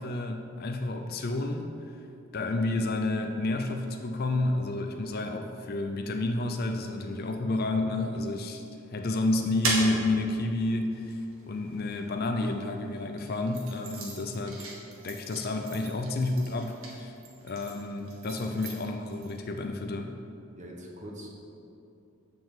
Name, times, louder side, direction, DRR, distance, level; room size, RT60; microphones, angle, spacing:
voice 1, 0.0-1.9 2.3-8.6 8.9-14.8 15.0-17.1 17.4-20.2, left 2 dB, 45° left, 5 dB, 0.5 m, -30 dB
sound 1, 8.9-12.5 13.1-19.4, right 2 dB, 75° right, 1.8 m, -38 dB
voice 2, 20.6-21.3, equal, 35° right, -1 dB, 1.2 m, -43 dB
6.9 x 6.1 x 7.2 m, 2.7 s
head